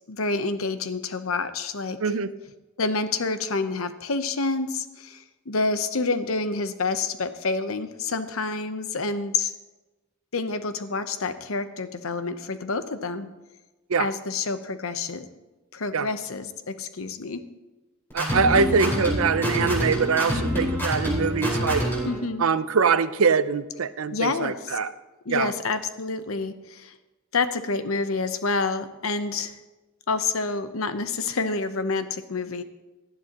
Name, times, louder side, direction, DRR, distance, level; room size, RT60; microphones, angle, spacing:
voice 1, 0.1-2.1 2.8-9.5 10.3-13.3 14.0-15.3 15.7-17.4 18.8-19.0 22.0-22.5 24.1-24.8 25.2-26.9 27.3-29.5 30.1-32.6, left 3 dB, 80° left, 10 dB, 0.9 m, -28 dB
voice 2, 2.0-2.3 13.9-14.1 15.9-16.1 18.1-21.8 22.4-24.9 25.3-25.5, right 5 dB, 90° right, 14 dB, 0.6 m, -23 dB
sound 1, 18.1-22.2, equal, 10° left, 4.9 m, -26 dB
18.5 x 12.5 x 3.0 m, 1.1 s
head